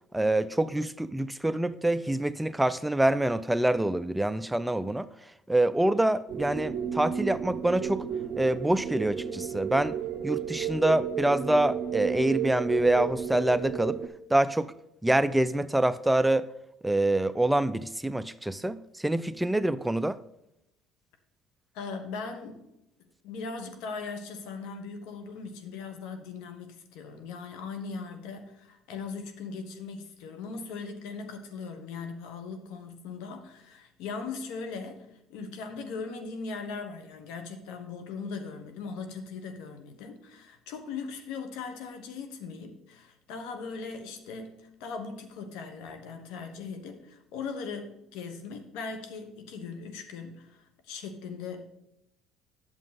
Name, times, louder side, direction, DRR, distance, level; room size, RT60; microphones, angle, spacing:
voice 1, 0.1-8.0 8.4-10.0 10.2-14.0 14.3-14.7 15.0-16.5 16.8-20.2, right 1 dB, 5° right, 0.3 m, -26 dB
sound 1, 6.3-14.1, right 8 dB, 55° right, 0.8 m, -33 dB
voice 2, 21.7-22.6 23.2-51.6, left 4 dB, 75° left, 1.2 m, -39 dB
8.9 x 7.3 x 4.1 m
supercardioid pair, 85°, 0 cm